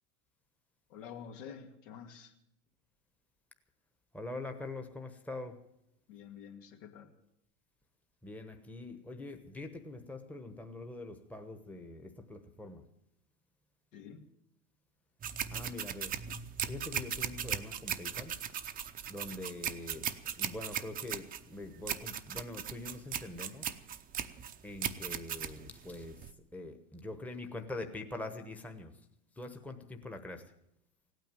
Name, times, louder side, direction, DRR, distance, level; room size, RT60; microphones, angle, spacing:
voice 1, 0.9-2.3 6.1-7.1 13.9-14.2, left 7 dB, 80° left, 4 dB, 2.3 m, -48 dB
voice 2, 4.1-5.6 8.2-12.8 15.5-16.1 16.7-18.3 19.1-20.1 20.4-23.7 24.6-26.2 26.5-28.9 29.4-30.4, left 2 dB, 5° left, 5 dB, 1.1 m, -44 dB
sound 1, 15.2-26.3, right 8 dB, 20° right, 0.7 m, -38 dB
16.5 x 9.2 x 9.1 m, 0.79 s
supercardioid pair, 125°, 38 cm